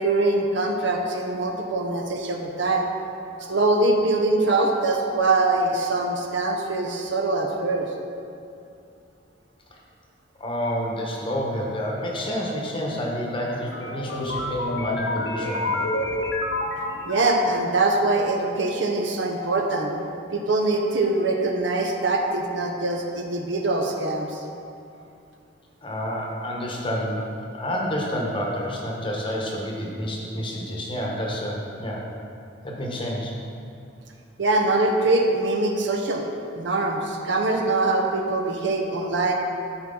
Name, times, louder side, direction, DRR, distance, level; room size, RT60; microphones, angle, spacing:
voice 1, 0.0-2.9 3.4-7.9 17.1-19.9 20.3-24.4 34.4-36.2 36.5-39.3, right 2 dB, 65° right, 2 dB, 0.8 m, -23 dB
voice 2, 10.4-15.9 25.8-27.2 27.5-32.1 32.6-33.3, equal, 25° left, -2 dB, 1.0 m, -29 dB
sound 1, 13.4-17.6, left 2 dB, 60° left, 0.9 m, -29 dB
12.5 x 4.5 x 3.8 m, 2.6 s
head